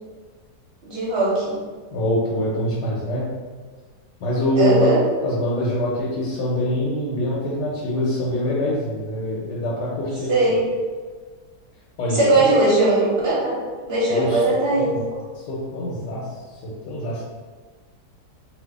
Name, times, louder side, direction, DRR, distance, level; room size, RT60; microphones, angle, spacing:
voice 1, 0.8-1.5 4.6-5.0 10.3-10.6 12.1-15.0, right 2 dB, 45° right, -6 dB, 0.9 m, -19 dB
voice 2, 1.9-3.3 4.2-4.9 5.2-10.5 12.0-12.4 14.1-15.0 15.4-17.2, left 1 dB, 80° left, -6 dB, 1.3 m, -24 dB
2.7 x 2.5 x 3.5 m, 1.4 s
omnidirectional pair, 1.8 m